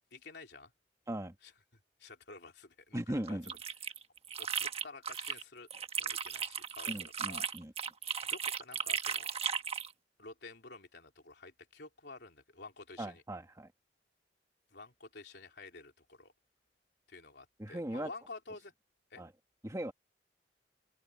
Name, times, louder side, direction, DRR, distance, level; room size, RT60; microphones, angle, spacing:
voice 1, 0.1-0.7 1.4-1.5 2.0-3.4 4.4-5.7 6.0-7.5 8.3-9.3 10.2-13.2 14.7-16.3 17.1-18.7 19.1-19.2, left 3 dB, 65° left, 3.7 m, -51 dB
voice 2, 2.9-3.5 6.9-7.7 13.0-13.7 17.6-18.1 19.2-19.3 19.6-19.9, right 1 dB, 15° right, 1.7 m, -38 dB
sound 1, 3.3-5.4 5.7-9.9, right 6 dB, 35° right, 1.3 m, -36 dB
head